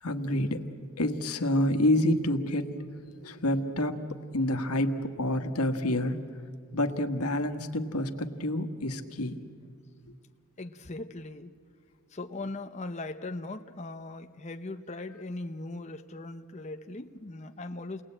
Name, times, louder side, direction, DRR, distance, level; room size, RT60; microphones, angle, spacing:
voice 1, 0.0-0.7 1.0-2.8 3.2-6.2 6.7-9.4, left 1 dB, 90° left, 7 dB, 1.5 m, -28 dB
voice 2, 10.6-11.5 12.1-18.0, left 2 dB, 30° left, 6 dB, 0.7 m, -39 dB
29.0 x 20.5 x 8.8 m, 2.2 s
head